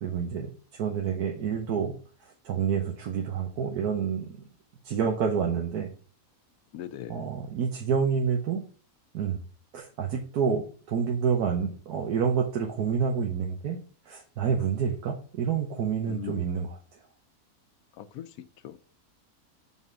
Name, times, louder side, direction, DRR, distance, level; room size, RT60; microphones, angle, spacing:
voice 1, 0.0-0.5 0.7-1.9 2.4-4.3 4.8-5.9 7.1-8.6 9.1-9.4 9.7-13.8 14.1-16.8, right 6 dB, 80° right, 1.4 m, -28 dB
voice 2, 6.7-7.3 16.1-16.5 18.0-18.8, left 9 dB, 75° left, 1.0 m, -40 dB
5.5 x 4.1 x 6.0 m
omnidirectional pair, 1.6 m